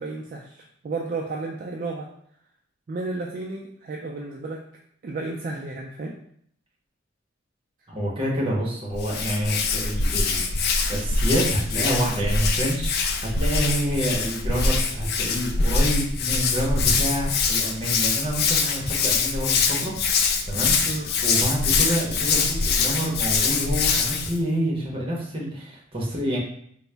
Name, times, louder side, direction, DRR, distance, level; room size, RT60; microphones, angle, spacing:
voice 1, 0.0-2.1 2.9-4.6 5.0-6.1 20.8-21.1, right 3 dB, 45° right, -1 dB, 0.3 m, -32 dB
voice 2, 7.9-26.4, equal, 30° right, -3 dB, 0.8 m, -28 dB
Hands, 8.9-24.4, left 4 dB, 50° left, 0.4 m, -24 dB
3.8 x 2.0 x 3.3 m, 0.68 s
head